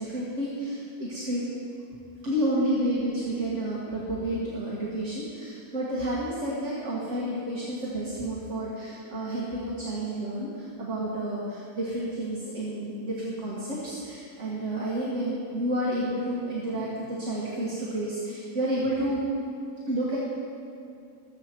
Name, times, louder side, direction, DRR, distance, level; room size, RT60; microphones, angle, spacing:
voice 1, 0.0-1.4 2.2-19.2 19.9-20.2, right 1 dB, 55° right, -6 dB, 2.1 m, -30 dB
20.5 x 7.8 x 4.5 m, 2.4 s
omnidirectional pair, 1.5 m